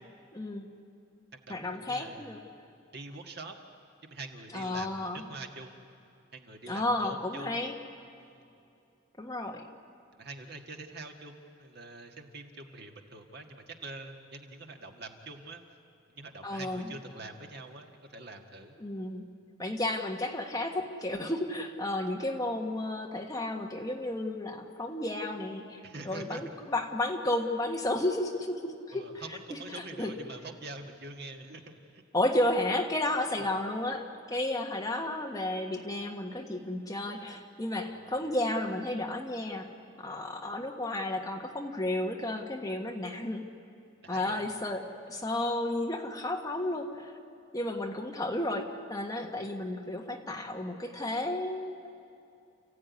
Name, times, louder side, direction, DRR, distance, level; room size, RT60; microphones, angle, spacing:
voice 1, 0.3-0.6 1.5-2.4 4.5-5.2 6.7-7.7 9.2-9.6 16.4-16.8 18.8-19.2 19.6-29.0 29.5-30.1 32.1-39.7 40.0-43.5 44.1-44.8 45.1-47.1 47.5-51.9, left 1 dB, 20° left, 2 dB, 1.4 m, -32 dB
voice 2, 1.3-2.4 2.9-3.6 4.0-5.9 6.3-7.6 8.2-8.5 10.1-15.6 16.1-18.8 25.8-26.4 28.9-32.0 33.4-33.5 37.8-38.2 44.0-44.5, right 3 dB, 55° right, 3 dB, 1.8 m, -45 dB
29.5 x 15.5 x 9.6 m, 2.6 s
head